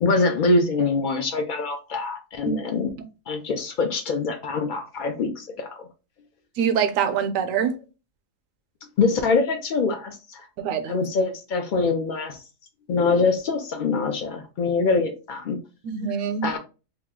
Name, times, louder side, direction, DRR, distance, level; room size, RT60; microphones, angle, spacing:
voice 1, 0.0-2.9 3.3-5.9 9.0-10.5 10.9-12.4 12.9-15.6 16.4-16.6, left 3 dB, 70° left, 0.4 m, -24 dB
voice 2, 6.6-7.8 10.6-11.0 15.8-16.5, right 7 dB, 80° right, 1.0 m, -24 dB
3.0 x 2.3 x 3.4 m
omnidirectional pair, 1.4 m